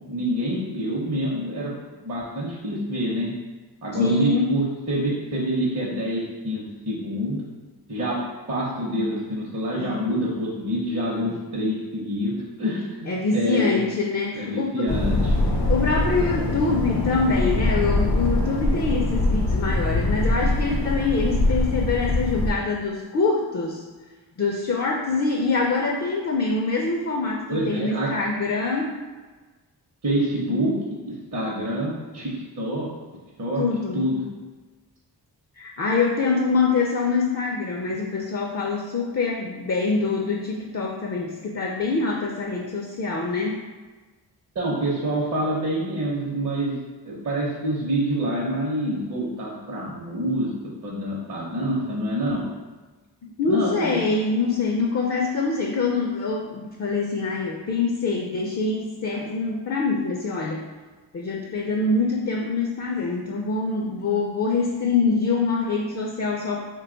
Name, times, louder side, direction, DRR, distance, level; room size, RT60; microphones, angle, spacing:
voice 1, 0.1-1.7 2.0-3.3 3.8-7.4 7.9-8.2 8.5-13.8 14.4-15.3 27.5-28.1 30.0-32.9 33.4-33.6 33.9-34.2 44.5-46.8 47.1-52.4 53.5-54.0, right 1 dB, 40° right, -5 dB, 0.7 m, -26 dB
voice 2, 4.0-4.5 9.8-10.0 13.1-14.8 15.7-23.8 24.4-29.0 33.6-34.2 35.6-43.6 53.2-60.6 61.1-66.6, left 4 dB, 40° left, 0 dB, 0.4 m, -25 dB
sound 1, 14.9-22.5, left 1 dB, 70° left, 0.8 m, -23 dB
2.8 x 2.3 x 3.8 m, 1.3 s
cardioid pair, 50°, 43 cm